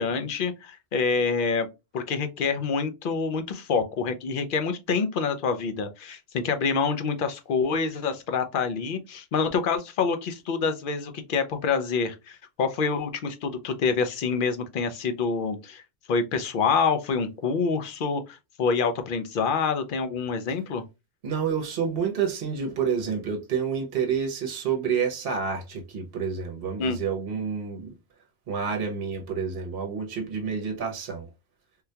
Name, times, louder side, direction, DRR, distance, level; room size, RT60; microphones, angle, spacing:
voice 1, 0.0-1.7 1.9-15.8 16.1-20.8 26.8-27.0, left 5 dB, 60° left, 0.7 m, -27 dB
voice 2, 21.2-27.9 28.5-31.3, right 6 dB, 60° right, 0.9 m, -29 dB
3.7 x 2.2 x 2.7 m
omnidirectional pair, 1.1 m